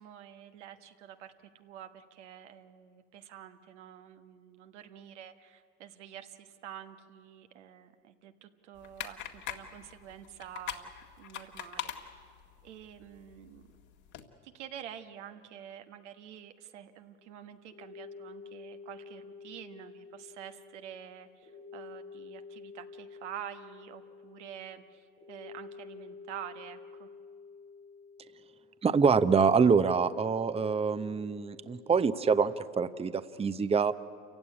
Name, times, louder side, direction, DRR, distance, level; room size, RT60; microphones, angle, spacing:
voice 1, 0.0-10.9 11.2-12.1 12.6-13.7 14.4-27.1, right 10 dB, 85° right, 7 dB, 1.5 m, -48 dB
sound 1, 8.8-14.2, left 10 dB, 60° left, 2.1 m, -43 dB
sound 2, 17.1-32.5, left 5 dB, 80° left, 7.3 m, -49 dB
voice 2, 28.8-33.9, right 5 dB, 15° right, 13 dB, 0.8 m, -26 dB
28.0 x 16.0 x 9.8 m, 2.2 s
hypercardioid pair, 85°, 34 cm